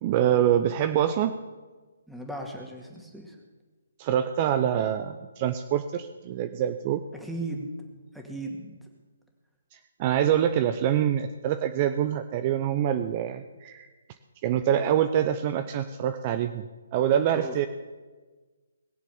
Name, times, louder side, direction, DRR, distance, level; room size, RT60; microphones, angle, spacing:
voice 1, 0.0-1.3 4.0-7.0 9.7-13.9 14.4-17.7, right 10 dB, 30° right, 9 dB, 0.7 m, -25 dB
voice 2, 2.1-3.4 7.1-7.8 8.1-8.7 17.3-17.6, right 1 dB, ahead, 0 dB, 2.2 m, -36 dB
20.5 x 7.4 x 7.2 m, 1.3 s
figure-of-eight pair, 140°, 0 cm